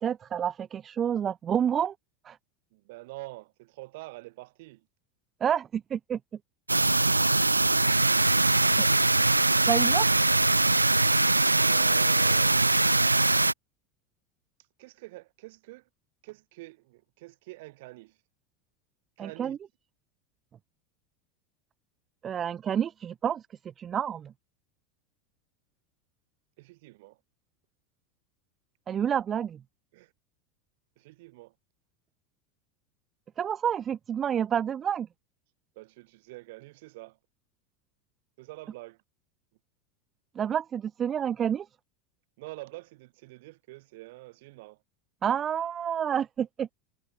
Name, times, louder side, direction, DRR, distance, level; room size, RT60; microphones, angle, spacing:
voice 1, 0.0-1.9 2.2-2.4 5.4-6.2 8.4-8.5 8.8-8.9 9.7-10.2 19.2-19.6 22.2-23.4 23.8-24.3 28.9-29.6 33.4-35.1 40.4-41.7 45.2-46.7, right 8 dB, 30° right, 0.5 m, -29 dB
voice 2, 2.7-4.8 11.6-12.7 14.8-15.8 16.2-18.2 19.2-19.6 26.6-27.2 29.9-30.1 31.0-31.5 35.7-37.2 38.4-39.0 42.4-44.8, right 21 dB, 60° right, 3.4 m, -46 dB
sound 1, 6.7-13.5, right 2 dB, 90° right, 0.7 m, -22 dB
figure-of-eight pair, 80°, 0 cm